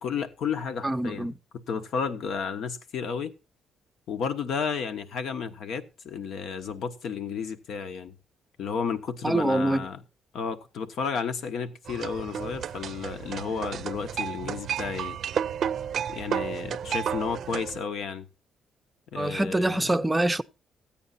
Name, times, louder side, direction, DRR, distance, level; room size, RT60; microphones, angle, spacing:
voice 1, 0.0-3.3 4.1-8.1 8.6-10.0 10.3-15.2 16.1-18.3 19.1-19.9, left 6 dB, 70° left, 1.1 m, -32 dB
voice 2, 0.8-1.3 9.2-9.9 19.2-20.4, right 1 dB, 15° right, 0.6 m, -25 dB
sound 1, 11.9-17.8, right 8 dB, 65° right, 0.5 m, -32 dB
14.0 x 8.8 x 4.1 m
cardioid pair, 90°, 0 cm